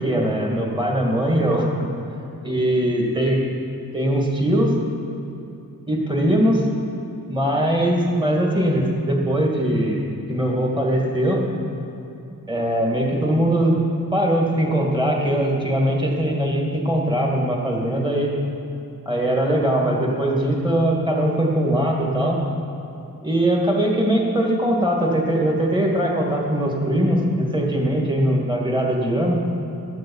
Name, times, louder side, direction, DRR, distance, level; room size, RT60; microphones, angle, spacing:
voice 1, 0.0-1.7 2.4-3.4 3.9-4.7 5.9-6.6 7.3-11.4 12.5-13.8 14.1-18.3 19.1-22.4 23.2-29.4, right 1 dB, 10° right, -1 dB, 2.3 m, -21 dB
11.5 x 7.7 x 7.2 m, 2.9 s
wide cardioid pair, 70°, 39 cm